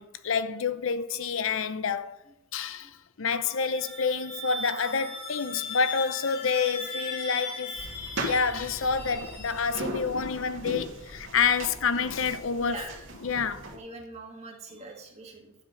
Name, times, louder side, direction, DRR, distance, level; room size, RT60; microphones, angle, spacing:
voice 1, 0.0-2.2 2.5-7.8 8.2-12.8 13.2-13.7, left 5 dB, 70° left, 0.7 m, -28 dB
sound 1, 3.4-10.0, left 3 dB, 40° left, 3.4 m, -38 dB
sound 2, 7.7-13.8, right 1 dB, 60° right, 2.3 m, -38 dB
voice 2, 12.6-13.1 13.7-15.6, right 2 dB, 30° right, 1.9 m, -42 dB
11.5 x 7.5 x 5.2 m
head